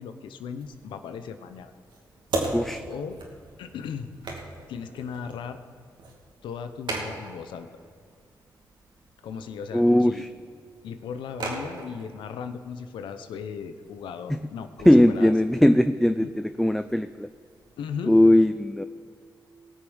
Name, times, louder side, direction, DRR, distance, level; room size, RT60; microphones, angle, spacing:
voice 1, 0.0-1.7 2.9-3.2 3.6-4.1 4.7-5.6 6.4-7.7 9.2-10.3 10.8-15.3 16.2-16.3 17.8-18.1, left 7 dB, 90° left, 9 dB, 0.8 m, -37 dB
sound 1, 0.6-18.2, right 2 dB, 75° right, 2.4 m, -40 dB
voice 2, 2.5-2.8 9.7-10.3 14.9-17.3 18.1-18.8, left 1 dB, 5° left, 10 dB, 0.5 m, -19 dB
19.5 x 6.5 x 6.3 m, 2.2 s
supercardioid pair, 50°, 8 cm